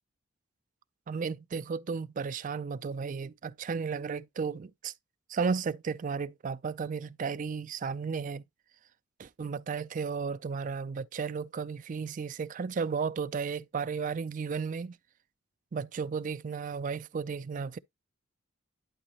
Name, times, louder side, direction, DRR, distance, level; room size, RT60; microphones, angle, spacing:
voice 1, 1.1-4.9 5.3-8.4 9.2-15.0 15.7-17.8, right 5 dB, 40° right, 0.4 m, -34 dB
11.5 x 4.0 x 3.0 m
head